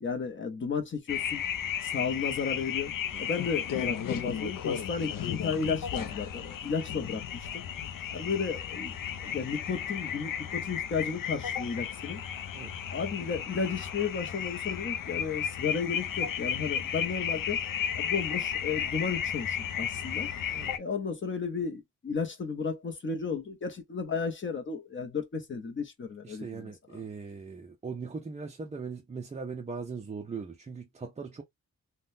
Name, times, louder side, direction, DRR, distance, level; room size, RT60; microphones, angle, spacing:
voice 1, 0.0-1.4 1.8-2.9 3.2-7.6 8.1-8.9 9.2-12.2 12.9-17.6 17.9-20.3 20.8-27.0, left 5 dB, 35° left, 0.7 m, -33 dB
sound 1, 1.1-20.8, left 8 dB, 70° left, 0.5 m, -34 dB
voice 2, 26.2-31.4, right 5 dB, 20° right, 0.4 m, -39 dB
3.7 x 2.2 x 2.5 m
wide cardioid pair, 175°, 34 cm